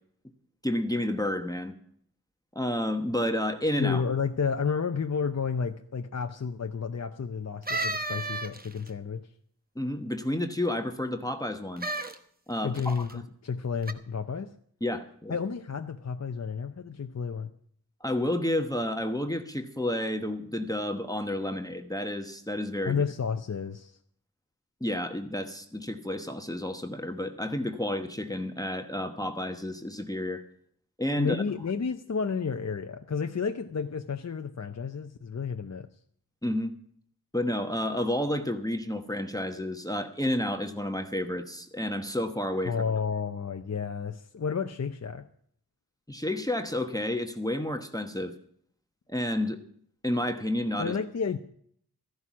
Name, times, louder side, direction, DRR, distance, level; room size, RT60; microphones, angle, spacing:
voice 1, 0.6-1.7 2.5-4.0 9.8-11.9 12.5-13.2 14.8-15.4 18.0-23.0 24.8-30.4 31.0-31.4 36.4-36.8 37.3-42.8 46.1-48.3 49.1-49.6 50.0-51.0, left 1 dB, 10° left, 6 dB, 1.1 m, -30 dB
voice 2, 3.8-9.3 12.6-14.5 15.3-17.5 22.9-24.0 31.2-35.9 42.6-45.3 50.8-51.4, left 6 dB, 45° left, 6 dB, 0.7 m, -31 dB
sound 1, 7.7-8.9 11.8-12.2 12.8-13.1 13.8-13.9, right 2 dB, 25° right, 1.0 m, -32 dB
14.0 x 11.0 x 6.1 m, 0.63 s
wide cardioid pair, 70°, 37 cm